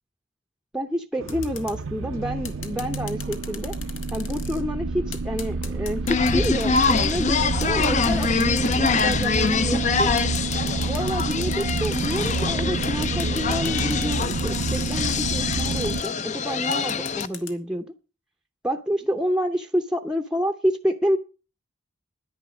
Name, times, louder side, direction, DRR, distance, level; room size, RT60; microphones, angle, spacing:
voice 1, 0.7-3.7 4.1-10.1 10.8-17.9 18.6-21.2, equal, 5° right, 0.7 m, -28 dB
sound 1, 1.2-16.0, right 3 dB, 80° right, 0.6 m, -28 dB
sound 2, 1.3-1.8 2.5-4.6 5.1-7.2 7.6-9.6 10.2-12.5 12.8-15.3 15.5-16.1 16.7-17.5, left 8 dB, 75° left, 1.6 m, -38 dB
sound 3, 6.1-17.3, left 5 dB, 35° left, 0.5 m, -25 dB
10.5 x 10.0 x 6.1 m
head